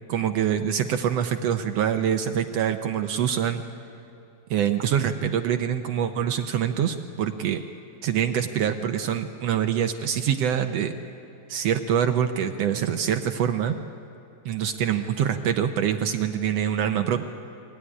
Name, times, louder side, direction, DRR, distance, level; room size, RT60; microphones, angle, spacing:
voice 1, 0.1-3.6 4.5-7.6 8.0-10.9 11.5-13.8 14.4-17.2, right 9 dB, 75° right, 7 dB, 1.5 m, -25 dB
23.5 x 18.0 x 9.9 m, 2.7 s
omnidirectional pair, 3.6 m